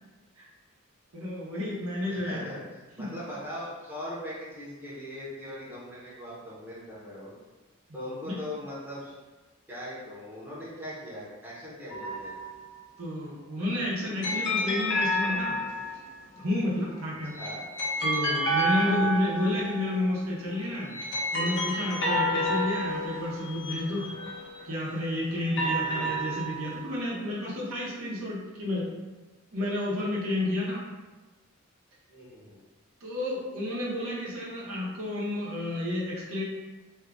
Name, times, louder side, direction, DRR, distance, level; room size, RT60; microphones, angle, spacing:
voice 1, 1.1-2.4 3.0-3.1 8.2-8.3 13.0-15.6 16.3-17.3 18.0-21.0 21.3-24.1 24.6-28.9 29.5-30.8 33.0-36.4, left 1 dB, 75° right, -5 dB, 0.8 m, -31 dB
voice 2, 2.1-7.3 7.9-9.1 9.7-12.3 17.3-17.6 18.7-19.2 19.5-19.6 25.9-26.2 32.1-32.6, left 1 dB, 10° right, -9 dB, 0.8 m, -40 dB
sound 1, 11.9-12.6 14.2-16.2 17.1-19.9 20.6-24.7 25.3-26.9, equal, 55° left, 0.7 m, -30 dB
2.8 x 2.3 x 3.5 m, 1.2 s
head